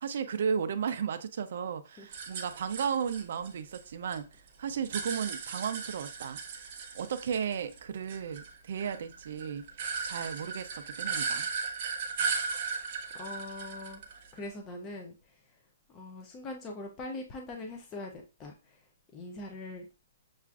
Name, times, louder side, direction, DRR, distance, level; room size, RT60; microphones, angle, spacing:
voice 1, 0.0-4.3 4.6-6.4 6.9-9.7 10.0-11.5, right 7 dB, 50° right, 0.4 m, -34 dB
sound 1, 2.1-4.2 4.5-7.8 8.1-14.4, right 5 dB, 30° right, 0.7 m, -36 dB
voice 2, 13.1-14.0 14.3-15.6 15.9-19.9, left 2 dB, 15° left, 0.4 m, -42 dB
6.7 x 2.4 x 2.4 m
hypercardioid pair, 175°, 0 cm